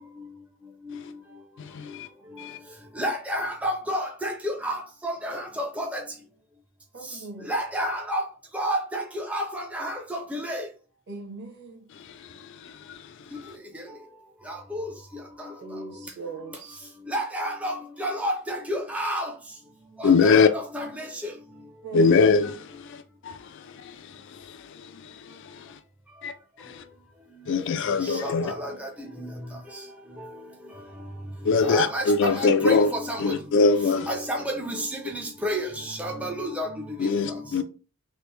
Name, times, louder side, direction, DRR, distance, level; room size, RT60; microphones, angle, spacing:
voice 1, 3.0-6.0 7.5-8.2 8.5-10.7 14.5-14.9 15.4-15.8 17.1-19.3 20.0-21.3 28.0-29.3 29.7-29.8 31.6-33.4 33.8-37.4, equal, 5° right, 0.5 m, -30 dB
voice 2, 6.9-7.5 11.1-11.8 15.6-16.8 21.8-22.2 33.9-34.1, right 4 dB, 50° right, 0.9 m, -40 dB
voice 3, 20.0-20.5 21.9-22.5 26.2-26.3 27.5-28.4 31.5-32.9 33.2-34.1 37.0-37.6, left 4 dB, 55° left, 0.3 m, -20 dB
3.3 x 2.5 x 3.1 m
head